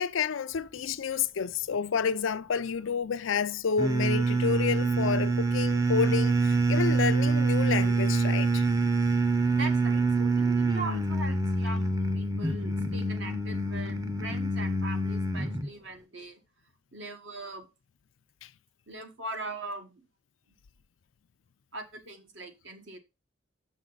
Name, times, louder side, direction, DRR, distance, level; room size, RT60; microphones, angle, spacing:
voice 1, 0.0-8.6, left 6 dB, 80° left, 0.5 m, -29 dB
sound 1, 3.8-15.7, right 3 dB, 15° right, 0.7 m, -26 dB
voice 2, 9.5-16.4 16.9-17.7 18.9-20.1 21.7-23.0, right 2 dB, 65° right, 1.4 m, -40 dB
6.7 x 6.3 x 3.9 m
head